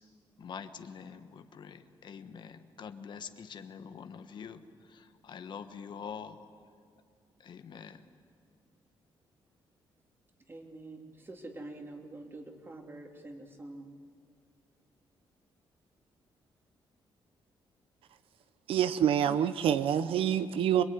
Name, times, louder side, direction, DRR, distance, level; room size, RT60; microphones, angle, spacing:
voice 1, 0.4-6.4 7.4-8.1 19.2-19.4, left 7 dB, 55° left, 9 dB, 1.3 m, -45 dB
voice 2, 10.5-13.9, right 2 dB, 25° right, 3 dB, 3.0 m, -46 dB
voice 3, 18.7-20.8, right 9 dB, 85° right, 12 dB, 1.0 m, -26 dB
25.5 x 21.5 x 9.7 m, 2.2 s
cardioid pair, 125°, 9 cm